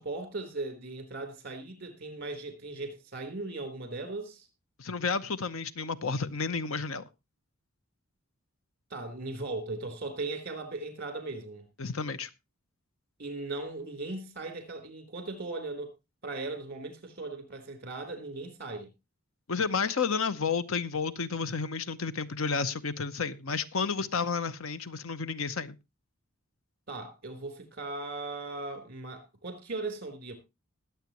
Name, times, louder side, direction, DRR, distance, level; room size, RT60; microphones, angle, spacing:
voice 1, 0.0-4.5 8.9-11.6 13.2-15.9 16.2-18.9 26.9-30.4, right 3 dB, 45° right, 3.8 m, -38 dB
voice 2, 4.8-7.1 11.8-12.3 19.5-25.7, left 5 dB, 75° left, 0.8 m, -31 dB
20.0 x 8.1 x 3.0 m
head